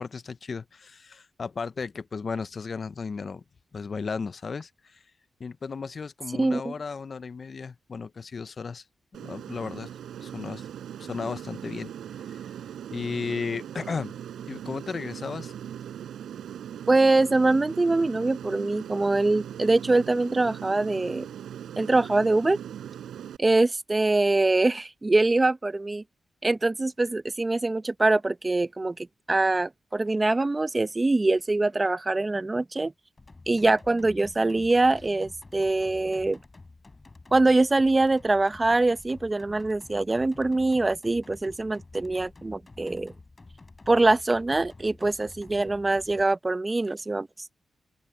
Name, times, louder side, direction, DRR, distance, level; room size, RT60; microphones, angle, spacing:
voice 1, 0.0-3.4 3.7-5.0 5.4-8.8 9.1-9.9 10.2-10.7 11.0-11.9 12.3-12.5 12.9-14.1 14.5-15.5, left 5 dB, 50° left, 0.6 m, -34 dB
voice 2, 6.4-6.7 16.9-21.3 21.8-22.6 23.4-26.0 26.4-32.9 33.5-36.4 37.3-43.1 43.9-47.3, right 2 dB, 25° right, 1.0 m, -23 dB
Aircraft, 9.1-23.4, right 10 dB, 90° right, 4.9 m, -40 dB
sound 1, 33.2-46.2, left 3 dB, 30° left, 3.6 m, -50 dB
open air
cardioid pair, 65°, 0 cm